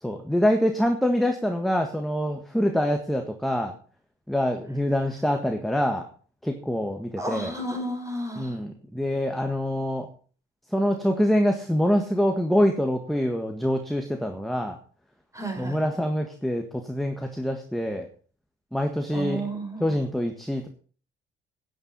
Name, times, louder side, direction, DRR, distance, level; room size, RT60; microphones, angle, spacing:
voice 1, 0.0-3.7 4.3-6.1 6.4-7.5 8.4-10.1 10.7-14.8 15.6-18.1 18.7-19.5 19.8-20.7, equal, ahead, 4 dB, 1.6 m, -25 dB
voice 2, 7.2-8.6 15.3-15.8 19.1-20.0, right 1 dB, 15° right, 3 dB, 4.8 m, -32 dB
11.0 x 9.2 x 5.5 m, 0.41 s
cardioid pair, 90°, 20 cm